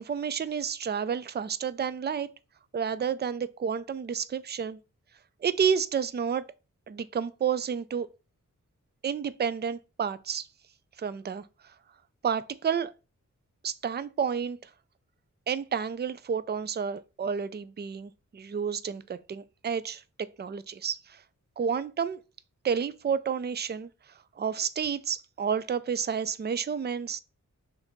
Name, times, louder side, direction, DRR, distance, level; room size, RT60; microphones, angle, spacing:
voice 1, 0.0-2.3 2.7-4.8 5.4-6.4 6.9-8.1 9.0-10.5 11.0-11.4 12.2-12.9 13.6-14.7 15.5-20.0 20.4-21.2 21.6-22.2 22.6-23.9 24.4-27.2, right 7 dB, 35° right, 0.4 m, -30 dB
5.7 x 3.9 x 4.4 m
wide cardioid pair, 120°, 32 cm